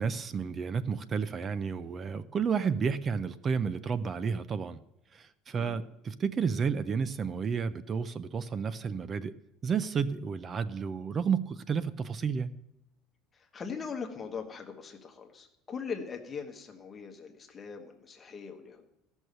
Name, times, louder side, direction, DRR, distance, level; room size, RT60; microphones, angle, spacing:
voice 1, 0.0-4.8 5.1-9.3 9.6-12.6, right 6 dB, 25° right, 0.4 m, -31 dB
voice 2, 13.3-18.9, left 6 dB, 20° left, 1.2 m, -41 dB
14.0 x 6.3 x 6.6 m
cardioid pair, 170°, 0 cm